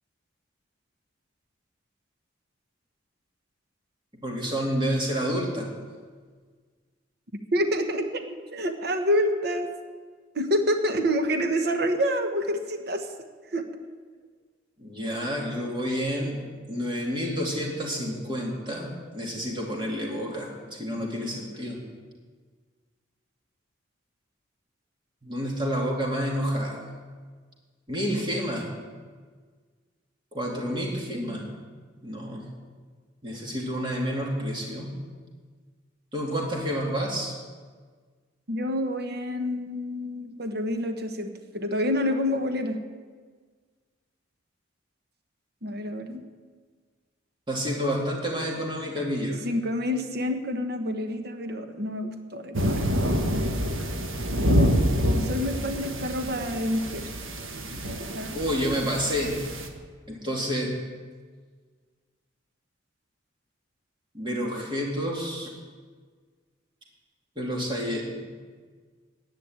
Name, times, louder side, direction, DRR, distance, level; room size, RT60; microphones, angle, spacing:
voice 1, 4.2-5.7 14.8-16.4 16.7-21.8 25.2-26.8 27.9-28.7 30.3-31.4 32.0-32.4 33.2-34.9 36.1-37.3 47.5-49.4 58.3-59.4 60.1-60.8 64.1-65.5 67.4-68.2, equal, 25° right, -2 dB, 2.5 m, -29 dB
voice 2, 7.5-8.2 8.5-9.7 10.3-13.1 13.5-13.6 38.5-42.8 45.6-46.2 49.4-52.8 55.1-57.0 58.1-58.3, equal, 55° right, 6 dB, 1.1 m, -27 dB
sound 1, 52.5-59.7, equal, 85° right, 1.4 m, -27 dB
10.5 x 10.5 x 8.9 m, 1.5 s
head